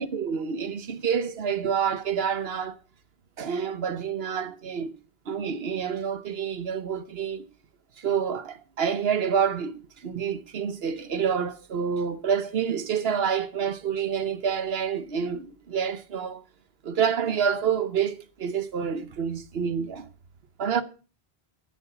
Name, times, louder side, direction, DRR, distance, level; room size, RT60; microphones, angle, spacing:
voice 1, 0.0-2.8 3.4-5.0 5.3-7.5 8.0-16.4 16.8-20.1 20.6-20.8, right 7 dB, 75° right, 1.2 m, -28 dB
10.0 x 8.9 x 5.9 m
omnidirectional pair, 1.0 m